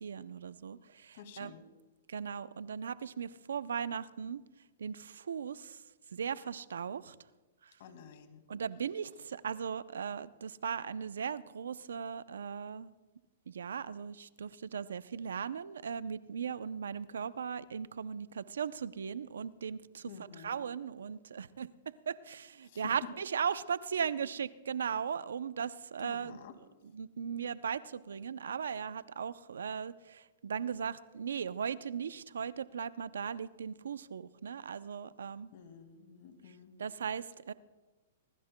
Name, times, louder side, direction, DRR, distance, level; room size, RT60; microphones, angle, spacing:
voice 1, 0.0-1.5 2.1-4.4 4.8-5.8 6.1-7.2 7.6-7.7 8.5-12.9 13.5-26.4 26.8-35.5 36.5-37.5, right 7 dB, 80° right, 16 dB, 0.6 m, -38 dB
voice 2, 1.1-1.6 7.8-8.5 20.1-20.6 22.6-22.8 26.0-26.5 35.5-36.7, left 7 dB, 60° left, 7 dB, 2.1 m, -52 dB
25.0 x 19.0 x 2.2 m, 1.2 s
hypercardioid pair, 125°, 0 cm